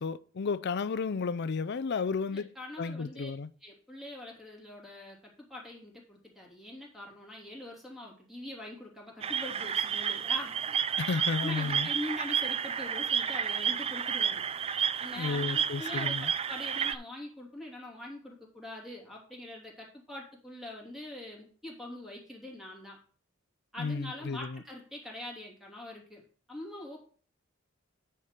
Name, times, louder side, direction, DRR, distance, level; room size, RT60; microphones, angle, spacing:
voice 1, 0.0-2.5 2.8-3.5 11.0-11.9 15.2-16.3 23.8-24.6, left 4 dB, 55° left, 0.5 m, -32 dB
voice 2, 2.3-3.3 3.6-10.8 11.1-14.4 15.0-23.0 23.7-26.2 26.5-27.0, left 1 dB, ahead, 2.8 m, -43 dB
sound 1, 9.2-17.0, right 7 dB, 30° right, 0.3 m, -31 dB
9.7 x 4.5 x 5.1 m
head